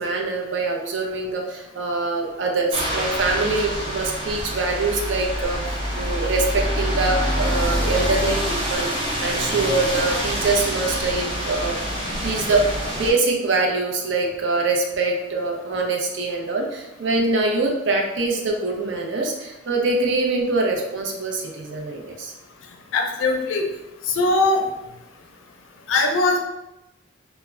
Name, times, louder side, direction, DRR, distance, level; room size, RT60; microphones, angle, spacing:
voice 1, 0.0-8.9 9.2-11.8 12.2-22.3, right 3 dB, 70° right, 1 dB, 0.5 m, -24 dB
sound 1, 2.7-13.1, equal, 30° right, 0.6 m, -26 dB
voice 2, 22.9-23.6 24.2-24.6 25.9-26.4, left 2 dB, 90° left, 3 dB, 0.4 m, -20 dB
2.1 x 2.1 x 3.4 m, 0.94 s
head